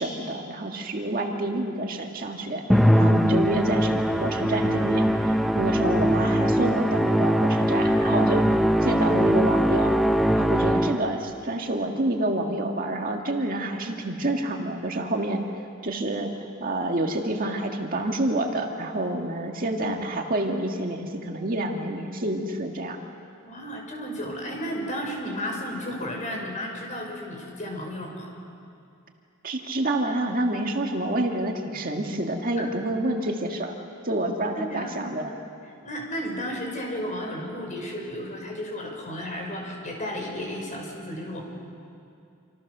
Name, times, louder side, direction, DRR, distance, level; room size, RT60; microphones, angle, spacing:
voice 1, 0.0-2.6 2.9-8.5 8.8-10.0 10.4-15.4 15.8-16.3 16.6-23.0 29.4-33.7 34.0-35.3, right 1 dB, 40° right, 2 dB, 1.9 m, -28 dB
Musical instrument, 2.7-11.2, equal, ahead, 0.7 m, -21 dB
voice 2, 23.4-28.3 34.6-34.9 35.8-41.4, equal, 35° left, 0 dB, 5.7 m, -33 dB
27.5 x 26.5 x 6.8 m, 2.5 s
head